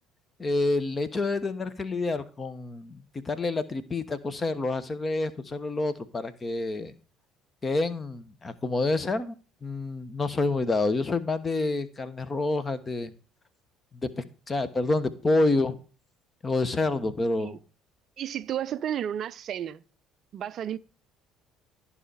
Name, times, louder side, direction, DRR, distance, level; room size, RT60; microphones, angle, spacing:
voice 1, 0.4-6.9 7.6-9.3 9.6-13.1 14.2-15.8 16.4-17.6, left 2 dB, 25° left, 1.2 m, -28 dB
voice 2, 18.2-19.8 20.3-20.8, right 10 dB, 45° right, 0.4 m, -32 dB
13.5 x 5.6 x 4.9 m
figure-of-eight pair, 55°, 0 cm